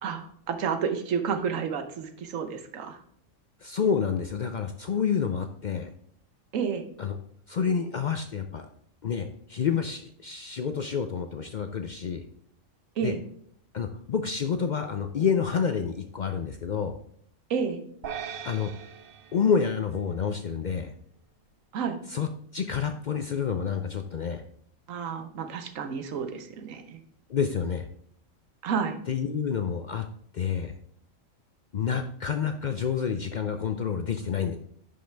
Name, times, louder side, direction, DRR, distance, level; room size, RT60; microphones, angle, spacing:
voice 1, 0.0-3.0 6.5-6.8 13.0-13.2 17.5-17.8 21.7-22.0 24.9-27.0 28.6-29.0, right 6 dB, 70° right, 8 dB, 1.2 m, -30 dB
voice 2, 3.6-5.9 7.0-7.2 7.5-8.7 9.0-12.2 13.0-13.1 13.7-16.9 18.4-18.7 19.3-20.9 22.1-22.3 22.5-24.4 27.3-27.9 29.1-30.1 30.3-30.7 31.7-34.6, left 6 dB, 70° left, 7 dB, 0.4 m, -28 dB
sound 1, 18.0-20.5, right 7 dB, 50° right, 0.8 m, -41 dB
10.5 x 5.6 x 3.4 m, 0.64 s
omnidirectional pair, 1.4 m